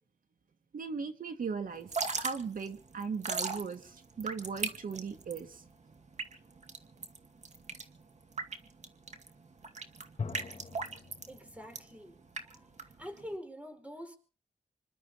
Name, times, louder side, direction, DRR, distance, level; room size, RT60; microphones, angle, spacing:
voice 1, 0.7-5.6, right 5 dB, 80° right, 7 dB, 2.2 m, -38 dB
Drip / Trickle dribble, 1.8-13.4, right 4 dB, 55° right, 2.4 m, -39 dB
sound 1, 4.2-5.5 10.2-12.1, left 4 dB, 50° left, 3.7 m, -45 dB
voice 2, 11.3-12.2 12.5-12.7 13.0-14.2, equal, 10° right, 7 dB, 4.7 m, -45 dB
26.5 x 12.0 x 4.3 m, 0.39 s
wide cardioid pair, 90°, 14 cm